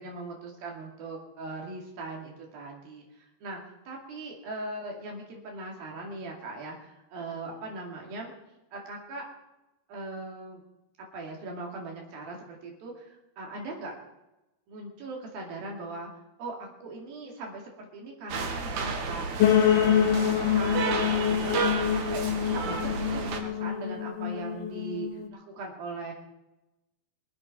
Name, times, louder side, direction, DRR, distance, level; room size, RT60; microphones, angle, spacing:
voice 1, 0.0-8.3 8.7-9.2 9.9-10.6 11.0-13.9 14.7-16.1 16.4-19.3 19.7-20.3 20.5-21.6 21.9-26.1, right 2 dB, 85° right, 0 dB, 4.2 m, -40 dB
sound 1, 18.3-23.4, right 4 dB, 60° right, 2.6 m, -32 dB
sound 2, 19.4-25.3, left 9 dB, 85° left, 1.3 m, -26 dB
23.0 x 8.2 x 5.7 m, 0.96 s
omnidirectional pair, 4.1 m